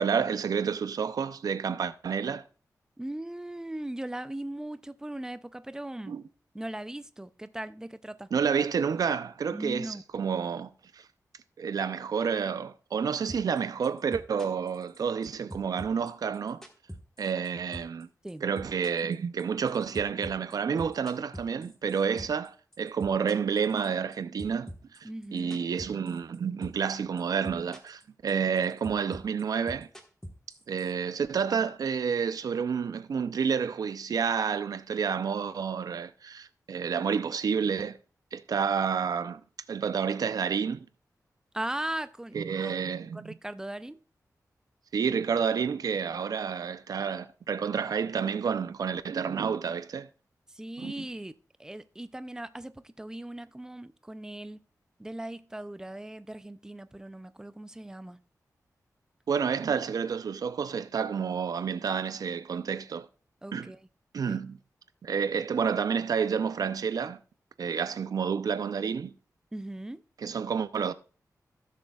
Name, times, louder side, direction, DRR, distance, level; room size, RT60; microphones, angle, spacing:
voice 1, 0.0-2.4 6.1-6.2 8.3-11.0 11.6-16.6 17.2-18.1 18.4-24.7 25.0-29.9 30.7-38.0 38.3-39.4 39.7-40.9 42.3-43.3 44.9-50.1 50.8-51.1 59.3-63.1 63.5-63.7 64.1-64.6 65.0-67.2 67.6-69.1 70.2-70.9, right 6 dB, 75° right, 0.5 m, -29 dB
voice 2, 3.0-6.2 6.5-8.3 9.5-10.0 18.2-18.4 25.0-25.7 41.5-42.8 43.1-44.0 50.5-51.3 51.6-54.6 55.0-58.2 63.4-63.9 64.3-64.4 69.5-70.0, right 1 dB, 10° right, 0.4 m, -38 dB
sound 1, 13.3-13.6 13.8-15.2 15.5-17.5 17.7-18.0 18.3-22.5 22.7-24.1 24.4-26.4 26.6-26.9 27.2-28.0 28.3-30.9, equal, 5° left, 1.3 m, -43 dB
16.0 x 6.7 x 2.3 m
wide cardioid pair, 135°, 6 cm